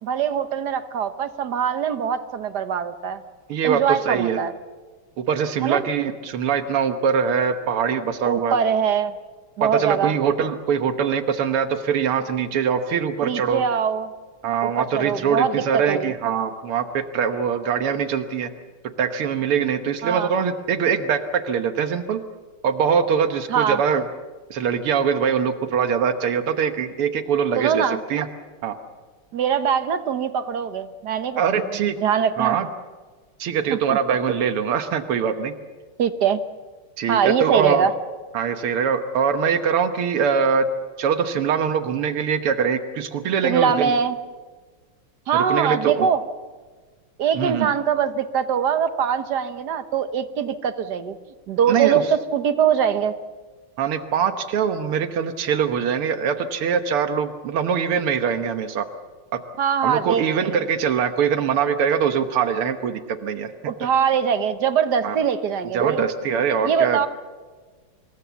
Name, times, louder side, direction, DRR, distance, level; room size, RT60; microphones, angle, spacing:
voice 1, 0.0-3.2 3.6-4.5 5.6-5.9 8.2-9.1 9.6-10.1 13.2-14.1 14.6-16.1 20.0-20.3 23.5-23.8 27.5-28.0 29.3-32.6 33.7-34.0 36.0-36.4 37.1-37.9 43.4-44.2 45.3-46.2 47.2-51.2 51.5-53.1 59.6-60.5 63.7-66.0 66.6-67.1, right 7 dB, 55° right, 11 dB, 1.4 m, -22 dB
voice 2, 3.5-4.4 5.2-8.6 9.6-13.6 14.4-18.5 19.0-22.2 22.6-24.1 24.5-28.3 28.6-28.8 31.4-32.0 32.4-32.7 33.4-35.5 37.0-37.9 38.3-40.7 41.0-43.9 45.3-46.1 47.3-47.7 51.7-52.0 53.8-58.9 59.3-59.4 59.8-63.5 65.0-65.2 65.7-67.1, right 7 dB, 85° right, 9 dB, 2.1 m, -23 dB
25.5 x 21.5 x 7.1 m, 1.4 s
omnidirectional pair, 2.4 m